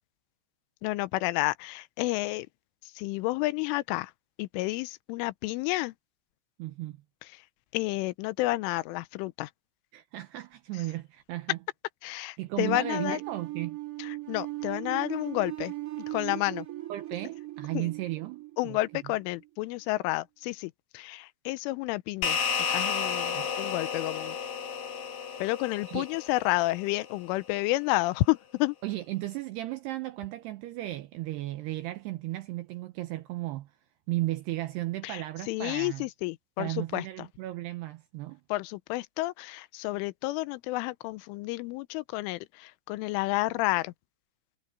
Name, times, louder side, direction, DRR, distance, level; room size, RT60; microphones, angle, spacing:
voice 1, 0.8-2.5 3.0-4.1 4.4-5.9 7.7-9.5 12.0-13.2 14.3-15.7 16.1-16.7 17.7-17.8 18.6-22.4 22.7-24.4 25.4-28.7 35.0-35.2 35.5-37.0 38.5-42.4 42.9-43.9, left 20 dB, 85° left, 3.2 m, -30 dB
voice 2, 6.6-7.0 9.9-11.6 12.4-13.8 16.9-19.2 23.3-23.5 25.9-26.1 28.8-33.7 34.1-36.1 36.6-38.4, right 17 dB, 85° right, 2.4 m, -35 dB
sound 1, 12.6-19.5, right 18 dB, 30° right, 1.7 m, -38 dB
sound 2, 22.2-26.9, left 6 dB, 55° left, 3.3 m, -32 dB
omnidirectional pair, 5.7 m